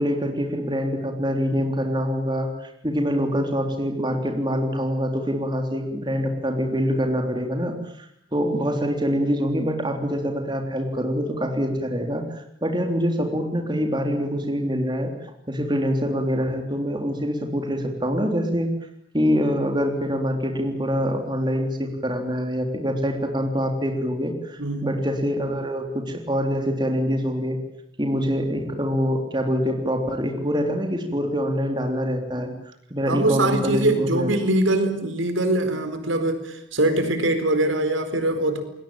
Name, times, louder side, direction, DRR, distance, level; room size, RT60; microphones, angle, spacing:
voice 1, 0.0-18.7 19.1-27.6 28.0-34.3, equal, 20° right, 4 dB, 3.6 m, -25 dB
voice 2, 24.6-25.0 33.1-38.6, right 1 dB, 80° right, 9 dB, 4.5 m, -22 dB
28.5 x 21.0 x 8.9 m, 0.74 s
head